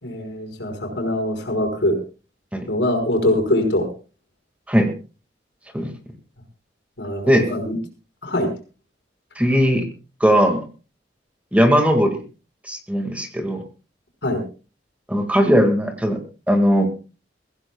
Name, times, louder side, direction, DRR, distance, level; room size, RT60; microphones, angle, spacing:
voice 1, 0.0-2.0 2.7-3.9 7.0-7.8 8.2-8.5 14.2-14.4, left 1 dB, 75° left, 5 dB, 5.1 m, -22 dB
voice 2, 9.4-9.8 10.2-10.6 11.5-12.2 12.6-13.6 15.1-16.2 16.5-16.9, equal, 10° right, 5 dB, 1.9 m, -18 dB
23.0 x 15.5 x 2.3 m, 0.35 s
head